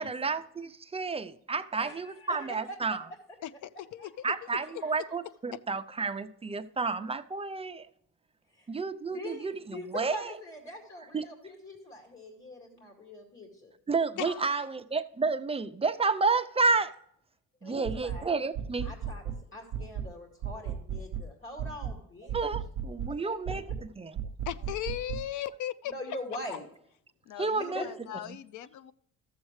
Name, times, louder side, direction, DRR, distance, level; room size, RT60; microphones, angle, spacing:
voice 1, 0.0-3.1 4.2-7.9 8.7-10.3 11.1-11.3 13.9-16.9 17.6-18.9 22.3-23.6 24.0-24.2 27.4-27.8, right 4 dB, 20° right, 0.5 m, -30 dB
voice 2, 1.8-2.8 4.0-5.0 8.5-8.8 9.1-13.7 17.6-18.3 18.8-19.2 19.5-22.4 23.2-23.5 25.9-26.6 27.7-27.9, left 1 dB, 40° left, 2.4 m, -43 dB
voice 3, 3.4-4.3 14.2-14.7 24.5-25.9 27.3-28.9, left 11 dB, 75° left, 0.5 m, -38 dB
sound 1, 17.8-18.2 18.5-19.4 19.7-20.1 20.4-21.3 21.6-22.0 22.3-23.2 23.5-23.9 24.2-25.3, right 7 dB, 70° right, 0.8 m, -35 dB
13.0 x 7.2 x 3.2 m
cardioid pair, 90°, 30 cm